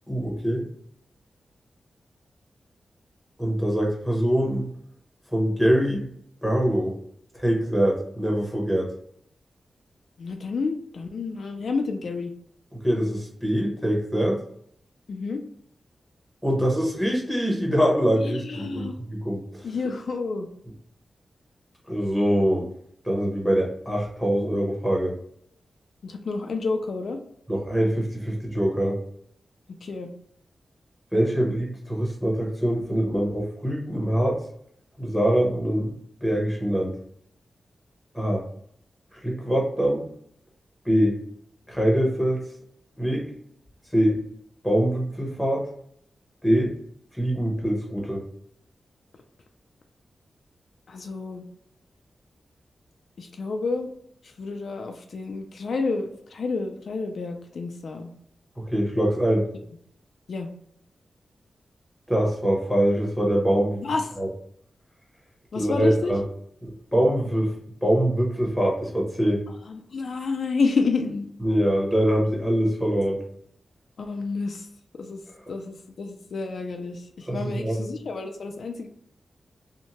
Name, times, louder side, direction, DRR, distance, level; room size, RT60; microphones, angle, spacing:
voice 1, 0.1-0.6 3.4-4.7 5.3-6.1 6.4-6.9 7.3-8.9 12.8-14.4 16.4-18.9 19.2-19.6 21.9-22.7 23.0-25.2 27.5-29.0 31.1-34.4 35.0-35.9 36.2-36.9 38.1-38.4 39.1-40.1 40.8-41.2 41.7-42.4 43.0-43.3 43.9-44.2 44.6-45.7 46.4-46.7 47.1-48.2 58.7-59.5 62.1-63.8 64.2-64.3 65.5-66.2 66.6-67.5 67.8-69.5 71.4-73.2 77.3-77.8, equal, ahead, -3 dB, 0.9 m, -23 dB
voice 2, 10.2-12.3 15.1-15.4 18.2-19.0 19.6-20.5 26.0-27.2 29.8-30.1 50.9-51.5 53.2-53.9 54.2-58.1 60.3-60.5 63.8-64.2 65.5-66.1 69.7-71.3 74.0-74.7 74.9-75.2 75.5-78.9, left 4 dB, 65° left, 4 dB, 0.3 m, -29 dB
2.7 x 2.1 x 2.9 m, 0.68 s
wide cardioid pair, 135°, 0 cm